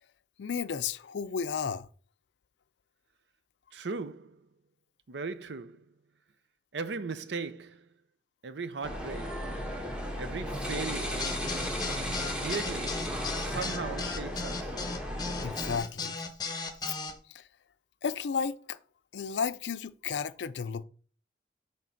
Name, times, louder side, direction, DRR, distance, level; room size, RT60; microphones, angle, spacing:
voice 1, 0.4-1.9 15.4-16.3 16.8-16.9 17.3-17.5 18.0-18.8 19.1-20.8, left 6 dB, 80° left, 0.4 m, -33 dB
voice 2, 3.7-4.4 5.1-5.9 6.7-7.8 8.4-9.4 10.2-11.3 12.4-14.8, right 4 dB, 75° right, 0.6 m, -38 dB
sound 1, 8.8-15.8, equal, 5° right, 1.2 m, -35 dB
sound 2, 11.2-17.1, left 4 dB, 25° left, 0.8 m, -36 dB
6.6 x 3.4 x 5.7 m
head